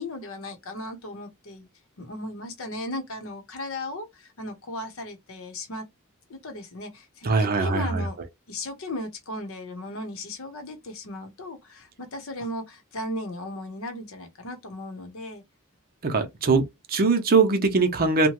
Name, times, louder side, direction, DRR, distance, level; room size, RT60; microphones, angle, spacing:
voice 1, 0.0-1.7 2.0-5.8 6.3-8.2 8.5-15.4, left 1 dB, 70° left, 0.8 m, -36 dB
voice 2, 7.2-8.0 16.0-18.3, right 4 dB, 45° right, 0.6 m, -22 dB
2.8 x 2.2 x 3.0 m
head